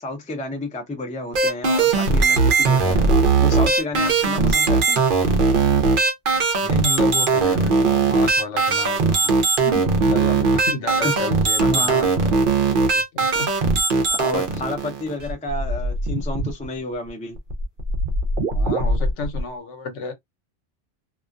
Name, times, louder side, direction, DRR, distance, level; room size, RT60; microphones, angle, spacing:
voice 1, 0.0-3.0 3.4-5.1 9.6-9.8 11.0-11.3 11.6-12.1 14.1-17.4, left 2 dB, 10° left, 0.3 m, -30 dB
sound 1, 1.3-16.6 17.4-19.4, right 4 dB, 55° right, 0.7 m, -19 dB
voice 2, 6.3-9.4 10.1-12.5 12.9-13.5 18.5-20.1, left 4 dB, 70° left, 1.0 m, -32 dB
2.4 x 2.2 x 2.4 m
omnidirectional pair, 1.3 m